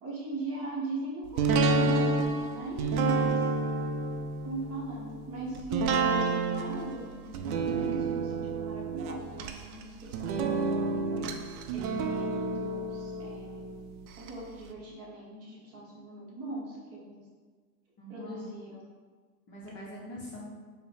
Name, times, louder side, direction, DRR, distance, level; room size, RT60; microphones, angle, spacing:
voice 1, 0.0-3.5 4.4-7.1 7.7-13.7 14.1-17.2 18.1-18.8, right 2 dB, 30° right, -4 dB, 0.9 m, -39 dB
sound 1, 1.4-14.3 14.7-14.8, right 3 dB, 70° right, 0.5 m, -30 dB
voice 2, 7.4-8.2 18.0-18.5 19.5-20.5, equal, 25° left, -6 dB, 0.6 m, -44 dB
4.5 x 2.1 x 3.2 m, 1.5 s
hypercardioid pair, 125°, 46 cm